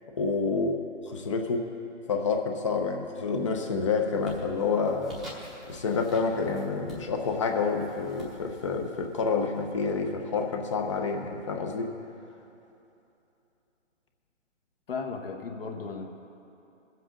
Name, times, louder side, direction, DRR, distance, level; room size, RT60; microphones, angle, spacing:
voice 1, 0.2-0.8 1.0-1.7 2.1-5.2 5.7-11.9, left 4 dB, 25° left, 4 dB, 0.7 m, -28 dB
sound 1, 2.9-3.4 3.8-10.4, left 1 dB, ahead, 0.9 m, -49 dB
voice 2, 14.9-16.1, left 4 dB, 50° left, 2 dB, 1.3 m, -35 dB
23.0 x 7.7 x 3.8 m, 2.9 s
hypercardioid pair, 165°, 37 cm